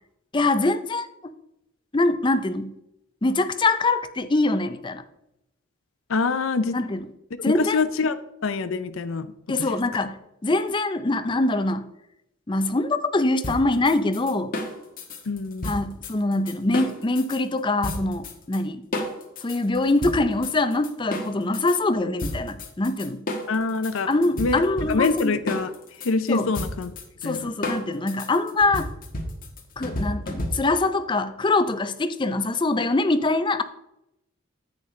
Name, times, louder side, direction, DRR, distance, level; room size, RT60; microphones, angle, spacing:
voice 1, 0.3-1.1 1.9-2.7 3.2-5.0 6.7-7.0 7.4-7.8 9.5-10.2 10.4-11.9 12.5-14.5 15.6-18.8 19.4-23.2 24.1-25.4 26.3-26.5 27.2-28.9 29.8-33.6, left 2 dB, 25° left, 11 dB, 0.5 m, -23 dB
voice 2, 6.1-6.8 7.4-9.3 9.6-9.8 15.3-15.8 23.5-24.1 24.4-25.7 26.0-26.9 27.2-27.5, left 4 dB, 75° left, 10 dB, 0.6 m, -25 dB
sound 1, 13.4-17.4 17.8-18.6 18.9-21.8 22.2-30.9, left 1 dB, 45° left, 1.4 m, -32 dB
10.5 x 8.5 x 3.2 m, 0.85 s
head